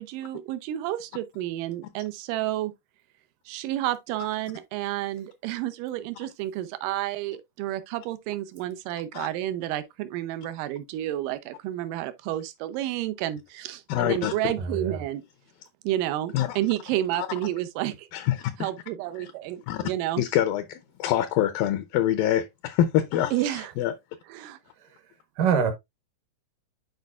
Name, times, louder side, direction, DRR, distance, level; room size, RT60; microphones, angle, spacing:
voice 1, 0.0-2.7 3.5-15.2 15.8-18.1 18.6-20.2 23.3-23.7 24.3-24.6, right 14 dB, 85° right, 1.9 m, -30 dB
voice 2, 13.9-14.3 16.3-16.6 17.2-17.3 18.1-18.7 19.2-19.3 19.7-19.8 20.2-23.9, left 11 dB, 80° left, 2.1 m, -25 dB
voice 3, 14.6-15.0 24.8-24.9 25.4-25.7, right 7 dB, 70° right, 2.3 m, -24 dB
10.5 x 4.5 x 2.3 m
omnidirectional pair, 4.6 m